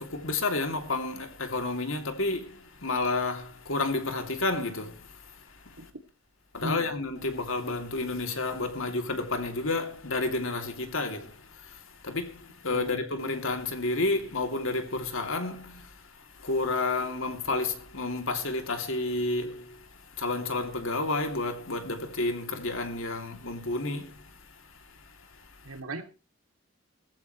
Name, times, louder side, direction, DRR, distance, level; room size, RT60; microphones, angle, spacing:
voice 1, 0.0-5.9 6.5-25.7, left 2 dB, 65° left, 2.8 m, -31 dB
voice 2, 6.6-7.0 12.7-13.0 25.6-26.0, right 1 dB, 80° right, 2.8 m, -36 dB
17.5 x 15.0 x 3.2 m
head